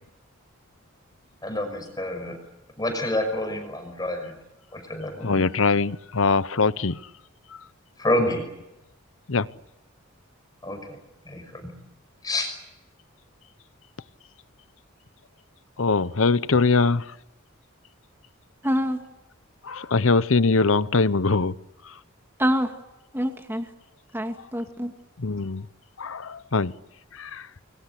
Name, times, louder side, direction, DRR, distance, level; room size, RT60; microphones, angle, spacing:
voice 1, 1.4-2.4 2.8-4.4 4.7-5.5 8.0-8.4 10.6-10.8 11.3-11.7 12.2-12.5, left 1 dB, 20° left, 5.8 m, -28 dB
voice 2, 5.2-7.0 9.3-9.5 15.8-17.1 19.6-21.5 21.8-21.9 25.2-25.7 26.0-26.7 27.1-27.5, left 4 dB, 70° left, 0.9 m, -22 dB
voice 3, 18.6-19.0 22.4-22.8 23.1-23.7 24.1-24.9, equal, 10° right, 2.2 m, -26 dB
29.5 x 22.5 x 8.4 m
head